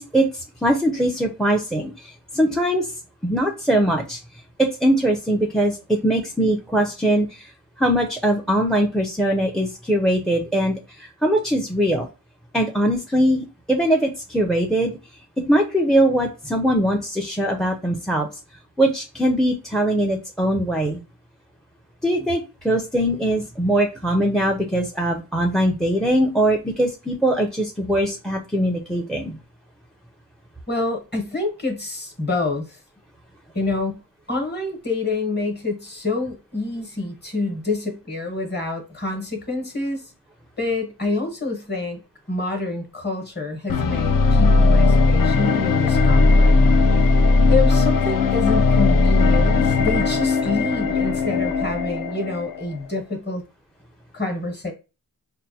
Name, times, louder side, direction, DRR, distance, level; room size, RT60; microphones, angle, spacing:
voice 1, 0.0-2.9 3.2-4.2 4.6-7.5 7.8-12.1 12.5-15.0 15.5-18.3 18.8-21.0 22.0-29.4, right 1 dB, ahead, 0.4 m, -21 dB
voice 2, 30.7-32.8 33.5-34.0 34.3-40.1 40.6-42.0 42.3-46.5 47.5-53.4 54.1-54.7, left 2 dB, 25° left, 1.0 m, -27 dB
sound 1, 43.7-52.7, left 3 dB, 60° left, 0.4 m, -17 dB
5.4 x 2.2 x 2.7 m
wide cardioid pair, 130°, 39 cm